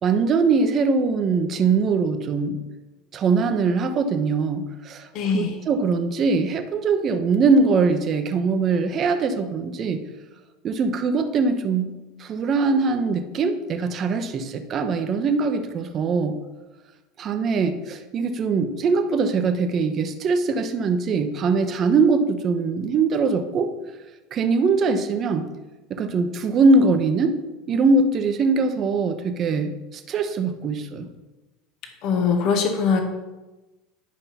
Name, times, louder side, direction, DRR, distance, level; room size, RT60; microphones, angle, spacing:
voice 1, 0.0-2.6 3.1-5.1 5.3-10.0 10.6-16.4 17.2-23.7 24.3-25.5 25.9-27.3 27.7-31.1, right 4 dB, 40° right, 7 dB, 0.9 m, -22 dB
voice 2, 5.1-5.6 32.0-33.0, left 5 dB, 55° left, 5 dB, 1.2 m, -22 dB
10.5 x 5.5 x 4.1 m, 1.1 s
figure-of-eight pair, 75°, 0 cm